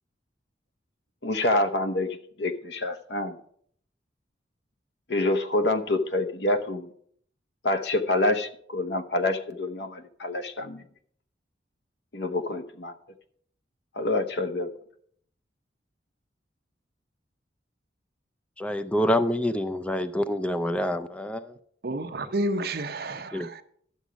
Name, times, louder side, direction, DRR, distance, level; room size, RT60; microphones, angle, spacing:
voice 1, 1.2-2.1 2.4-3.4 5.1-6.9 7.6-10.8 12.1-12.9 14.0-14.7, left 2 dB, 70° left, 8 dB, 1.0 m, -27 dB
voice 2, 18.6-21.6 23.3-23.5, equal, 5° left, 10 dB, 0.4 m, -27 dB
voice 3, 21.8-23.6, right 1 dB, 60° right, 8 dB, 0.8 m, -30 dB
11.5 x 7.2 x 5.1 m, 0.63 s
head